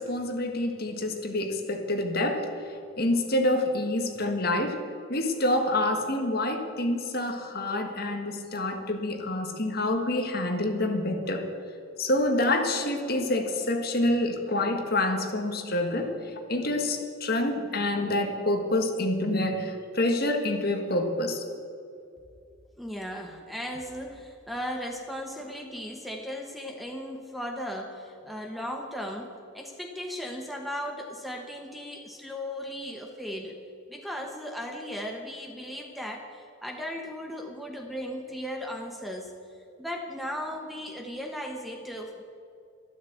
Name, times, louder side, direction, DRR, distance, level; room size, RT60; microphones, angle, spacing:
voice 1, 0.0-4.8 5.1-11.5 12.0-21.4, left 1 dB, 45° left, 4 dB, 1.6 m, -27 dB
voice 2, 22.8-33.6 33.9-39.3 39.8-42.2, equal, ahead, 2 dB, 1.0 m, -36 dB
12.5 x 12.5 x 7.9 m, 2.4 s
head